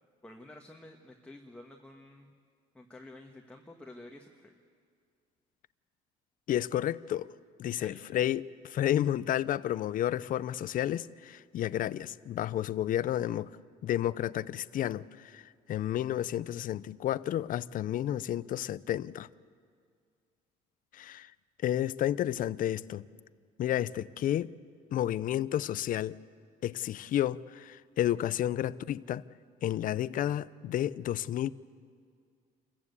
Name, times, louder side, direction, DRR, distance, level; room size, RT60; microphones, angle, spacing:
voice 1, 0.2-2.3 2.7-4.6 7.8-8.0, left 2 dB, 5° left, 1.4 m, -50 dB
voice 2, 6.5-7.3 7.6-13.5 13.8-15.4 15.7-19.3 20.9-21.3 21.6-23.1 23.6-24.5 24.9-26.2 26.6-29.2 29.6-31.5, left 12 dB, 55° left, 0.5 m, -31 dB
27.5 x 14.5 x 8.3 m
cardioid pair, 110°, 17 cm